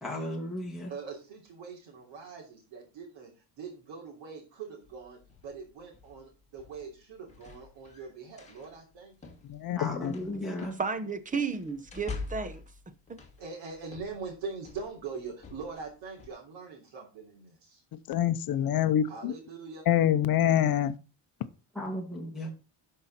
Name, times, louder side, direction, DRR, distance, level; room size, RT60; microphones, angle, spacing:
voice 1, 0.0-0.9 9.7-10.8 21.7-22.5, left 1 dB, ahead, 2.2 m, -35 dB
voice 2, 0.9-3.3 3.6-9.3 13.4-17.8 19.1-19.8, right 5 dB, 75° right, 3.4 m, -42 dB
sound 1, 4.8-16.3, left 4 dB, 15° left, 2.0 m, -47 dB
voice 3, 9.5-10.1 18.1-19.3 19.9-20.9, left 10 dB, 50° left, 0.8 m, -25 dB
voice 4, 10.8-12.9, right 5 dB, 15° right, 0.8 m, -33 dB
12.5 x 5.5 x 4.3 m
cardioid pair, 165°, 45 cm